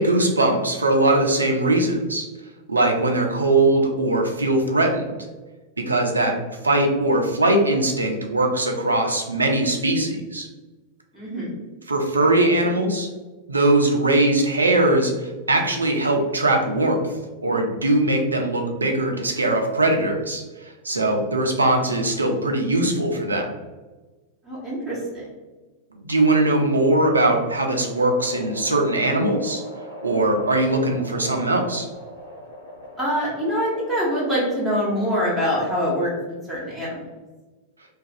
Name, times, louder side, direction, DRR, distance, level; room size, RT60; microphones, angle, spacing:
voice 1, 0.0-2.3 2.7-5.0 5.8-6.4 6.6-10.5 11.9-13.1 13.5-17.0 17.4-23.6 26.0-29.6 30.0-31.9, right 2 dB, 80° right, 2 dB, 0.4 m, -20 dB
voice 2, 11.1-11.5 24.4-25.3 33.0-37.0, equal, 5° right, -9 dB, 1.0 m, -24 dB
sound 1, 27.2-34.9, equal, 70° left, 0.7 m, -40 dB
2.4 x 2.2 x 2.6 m, 1.2 s
figure-of-eight pair, 90°, 0 cm